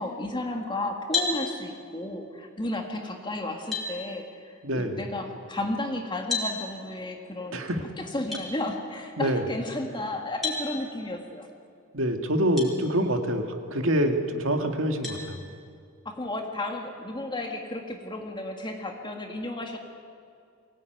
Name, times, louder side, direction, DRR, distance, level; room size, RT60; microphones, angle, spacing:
voice 1, 0.0-7.7 8.0-11.5 16.1-19.8, left 1 dB, 25° left, 2 dB, 2.0 m, -33 dB
sound 1, 1.1-1.4 3.1-3.2 3.7-3.9 6.3-6.5 8.3-8.5 10.4-10.6 12.6-12.7 13.4-13.5 15.0-15.2, left 4 dB, ahead, 4.8 m, -29 dB
voice 2, 4.6-5.0 7.5-7.8 9.2-9.4 11.9-13.5 13.7-15.4, equal, 70° right, 5 dB, 2.2 m, -25 dB
23.5 x 17.5 x 9.3 m, 2.3 s
head